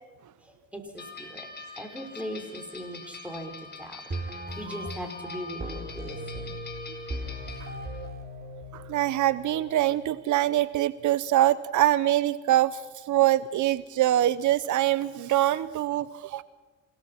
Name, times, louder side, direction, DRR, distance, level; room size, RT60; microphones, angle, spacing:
voice 1, 0.4-1.5 1.8-4.0 4.6-6.6, equal, 5° right, 4 dB, 5.6 m, -39 dB
sound 1, 1.0-8.1, left 4 dB, 35° left, 4.8 m, -44 dB
sound 2, 4.1-10.1, right 1 dB, 30° right, 5.7 m, -38 dB
voice 2, 8.7-16.4, right 13 dB, 75° right, 16 dB, 0.9 m, -24 dB
28.0 x 18.0 x 5.9 m, 1.2 s
cardioid pair, 90°, 30 cm